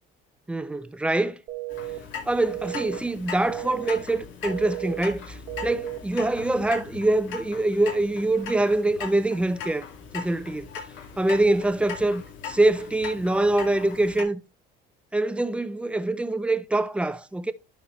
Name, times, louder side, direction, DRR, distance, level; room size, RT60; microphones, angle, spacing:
voice 1, 0.5-1.4 2.3-9.8 10.1-10.7 11.2-14.4 15.1-17.5, right 2 dB, 5° right, 0.5 m, -24 dB
sound 1, 1.5-2.0 2.5-3.0 3.5-4.0 4.5-5.0 5.5-6.0, right 20 dB, 60° right, 1.3 m, -34 dB
Clock, 1.7-14.2, left 6 dB, 70° left, 2.3 m, -39 dB
11.5 x 4.3 x 3.1 m
cardioid pair, 125°, 20 cm